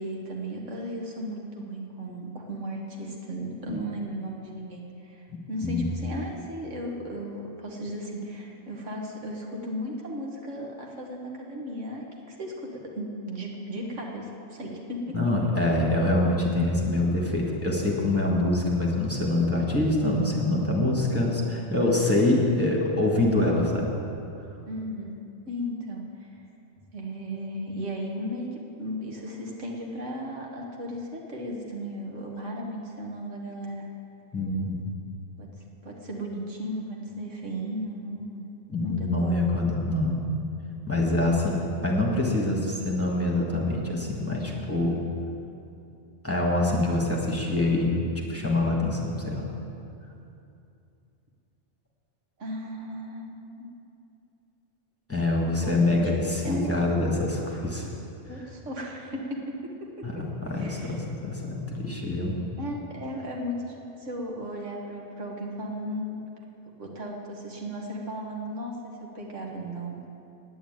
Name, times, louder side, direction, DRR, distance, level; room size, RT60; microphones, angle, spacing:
voice 1, 0.0-15.3 24.7-25.2 25.5-26.4 26.9-33.9 35.4-35.5 35.8-38.4 38.8-39.4 44.7-45.0 49.1-49.3 52.4-53.7 55.6-56.2 56.4-56.7 58.3-59.7 60.0-60.2 60.6-61.0 62.6-66.2 66.8-68.8 69.1-70.1, equal, 85° right, 0 dB, 1.9 m, -35 dB
voice 2, 15.1-23.9 34.3-34.9 38.7-40.2 40.9-44.9 46.2-48.0 48.3-49.4 55.1-57.9 60.0-62.4, left 2 dB, 10° left, -3 dB, 1.7 m, -25 dB
9.4 x 8.8 x 8.9 m, 2.7 s
omnidirectional pair, 1.2 m